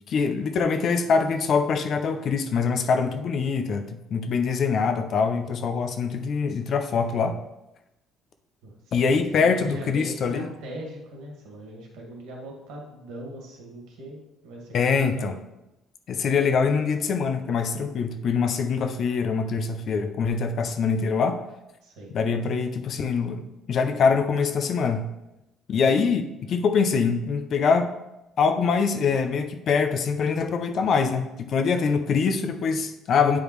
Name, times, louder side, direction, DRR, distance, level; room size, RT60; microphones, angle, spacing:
voice 1, 0.1-7.4 8.9-10.5 14.7-15.3 16.1-21.4 22.1-23.4 23.7-25.1 25.7-27.9 28.4-33.4, left 5 dB, 40° left, 8 dB, 0.5 m, -24 dB
voice 2, 8.6-15.4 21.8-22.2 23.3-23.5, right 1 dB, 85° right, -1 dB, 2.1 m, -41 dB
9.1 x 5.0 x 3.2 m, 0.92 s
cardioid pair, 170°, 0 cm